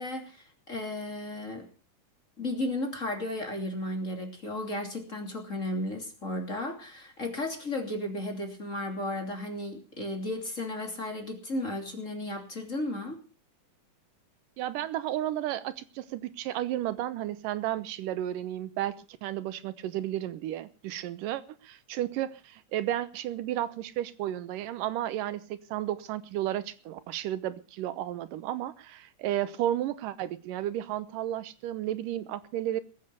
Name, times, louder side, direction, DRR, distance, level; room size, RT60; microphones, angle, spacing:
voice 1, 0.0-1.7 2.4-13.2, left 1 dB, 25° left, 3 dB, 2.9 m, -34 dB
voice 2, 14.6-32.8, right 12 dB, 85° right, 15 dB, 2.5 m, -33 dB
20.5 x 8.3 x 6.9 m, 0.38 s
omnidirectional pair, 3.7 m